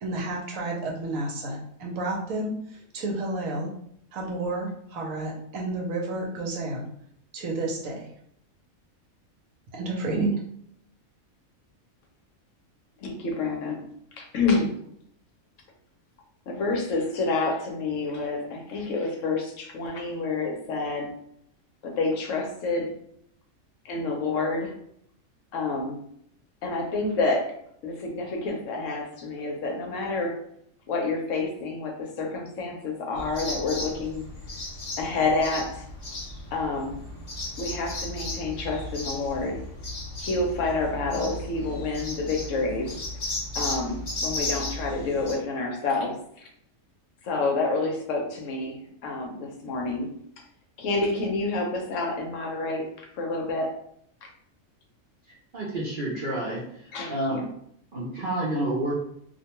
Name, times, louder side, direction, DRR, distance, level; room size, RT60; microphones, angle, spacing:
voice 1, 0.0-3.7 4.1-6.9 7.3-8.1 9.7-10.4, right 2 dB, 75° right, -1 dB, 1.0 m, -30 dB
voice 2, 13.0-13.9 14.2-14.8 16.5-21.1 21.8-22.9 23.8-24.7 25.5-26.0 26.6-27.5 27.8-30.4 30.9-34.3 35.0-35.9 36.5-37.0 37.6-39.6 40.2-42.9 43.5-46.5 47.2-50.1 50.8-52.9 53.1-53.7 54.2-54.3 56.9-57.5, left 3 dB, 70° left, 1 dB, 0.9 m, -28 dB
sound 1, 33.1-45.3, left 2 dB, 55° left, 0.5 m, -35 dB
voice 3, 55.5-56.6 57.1-57.4 57.9-58.9, right 1 dB, 55° right, -6 dB, 0.6 m, -28 dB
2.5 x 2.1 x 2.8 m, 0.69 s
omnidirectional pair, 1.5 m